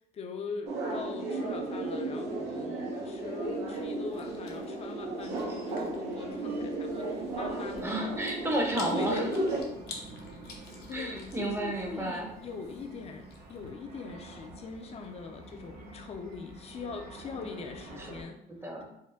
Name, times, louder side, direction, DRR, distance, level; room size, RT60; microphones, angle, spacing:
voice 1, 0.1-8.2 8.9-9.4 9.9-10.0 10.9-18.4, left 5 dB, 40° left, 5 dB, 0.6 m, -42 dB
sound 1, 0.6-9.6, right 2 dB, 80° right, 1.2 m, -34 dB
sound 2, 1.4-18.2, right 2 dB, 65° right, 1.0 m, -51 dB
Chewing mastication, 3.5-13.7, left 4 dB, 70° left, 0.8 m, -51 dB
voice 2, 7.8-9.3 10.9-12.3 18.5-18.8, right 1 dB, 15° right, 1 dB, 0.8 m, -32 dB
4.4 x 2.1 x 3.5 m, 0.79 s
cardioid pair, 110°, 17 cm